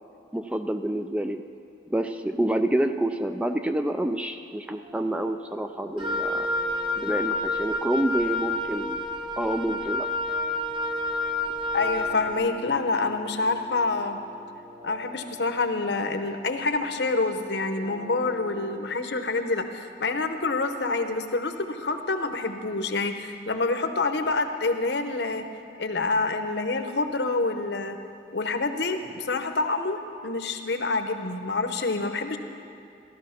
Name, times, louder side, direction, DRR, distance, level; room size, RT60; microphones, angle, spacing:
voice 1, 0.3-1.4 1.9-6.5 7.0-9.1 9.4-10.1, right 1 dB, 5° right, 7 dB, 0.3 m, -28 dB
sound 1, 2.1-18.8, left 1 dB, 55° right, 2.3 m, -47 dB
Wind instrument woodwind instrument, 6.0-12.2, left 2 dB, 30° right, 1.2 m, -29 dB
voice 2, 11.7-14.2 14.8-25.4 25.8-28.0 28.3-32.4, left 3 dB, 70° left, 7 dB, 0.9 m, -27 dB
15.0 x 12.5 x 5.9 m, 2.5 s
head